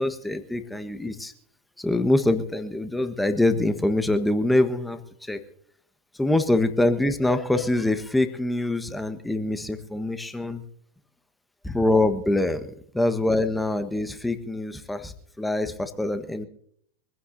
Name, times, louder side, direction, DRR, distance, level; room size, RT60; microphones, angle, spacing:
voice 1, 0.0-1.3 1.8-5.4 6.2-10.6 11.6-12.7 12.9-16.5, left 2 dB, 5° left, 9 dB, 1.3 m, -24 dB
24.0 x 15.5 x 2.7 m, 0.67 s
figure-of-eight pair, 90°, 0 cm